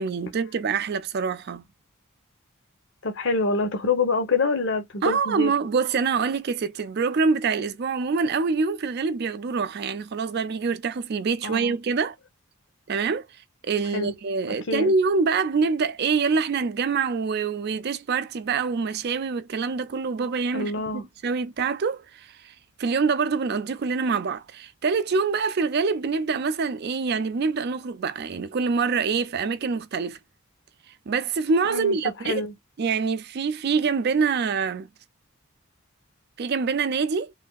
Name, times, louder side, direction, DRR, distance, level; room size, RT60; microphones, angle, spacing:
voice 1, 0.0-1.6 5.0-12.2 12.9-13.3 13.6-22.5 22.8-30.2 31.1-32.4 32.8-34.9 36.4-37.3, right 5 dB, 50° right, 0.4 m, -25 dB
voice 2, 3.0-5.5 11.4-11.7 13.9-14.1 14.5-14.9 20.5-21.0 31.7-32.0 32.2-32.5, left 3 dB, 60° left, 0.7 m, -26 dB
3.2 x 2.5 x 2.2 m
head